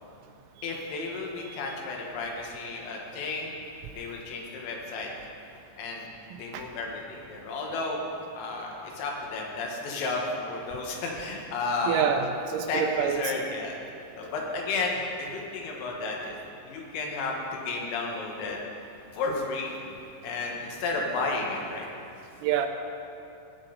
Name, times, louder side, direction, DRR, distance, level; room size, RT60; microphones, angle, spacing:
voice 1, 0.6-3.6 4.0-5.1 5.8-6.1 6.3-8.0 8.4-12.1 12.7-13.8 14.2-16.4 16.7-18.6 19.1-19.9 20.2-21.9, left 3 dB, 90° left, -1 dB, 4.0 m, -32 dB
voice 2, 11.9-13.3 22.4-22.7, right 8 dB, 85° right, 5 dB, 2.9 m, -27 dB
15.0 x 8.8 x 3.9 m, 2.7 s
omnidirectional pair, 5.8 m